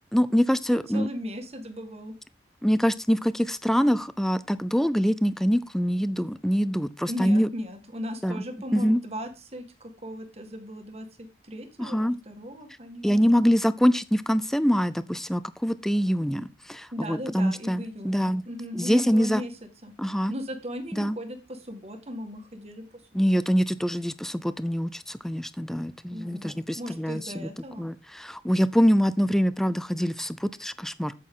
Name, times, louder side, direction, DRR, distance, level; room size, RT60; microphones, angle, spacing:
voice 1, 0.1-1.1 2.6-7.5 8.2-8.4 8.7-9.0 11.8-12.2 13.0-18.4 18.7-19.4 20.0-20.3 20.9-21.2 23.1-27.5 27.8-31.1, equal, ahead, 0.4 m, -24 dB
voice 2, 0.7-2.1 7.1-13.3 16.9-22.8 23.1-23.2 26.1-27.9, left 1 dB, 35° right, 1.7 m, -37 dB
8.8 x 8.5 x 3.7 m
head